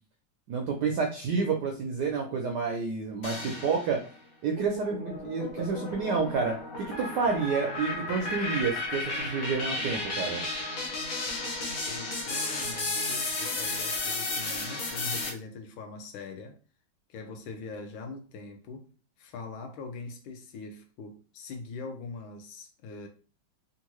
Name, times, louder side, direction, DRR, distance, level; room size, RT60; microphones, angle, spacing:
voice 1, 0.5-4.0 4.4-10.4, right 5 dB, 75° right, 0.9 m, -29 dB
sound 1, 3.2-4.1 4.6-15.3, left 2 dB, 60° left, 1.0 m, -33 dB
voice 2, 11.9-16.6 17.1-18.9 19.2-23.1, left 3 dB, 80° left, 1.4 m, -42 dB
3.6 x 2.4 x 3.0 m
omnidirectional pair, 2.3 m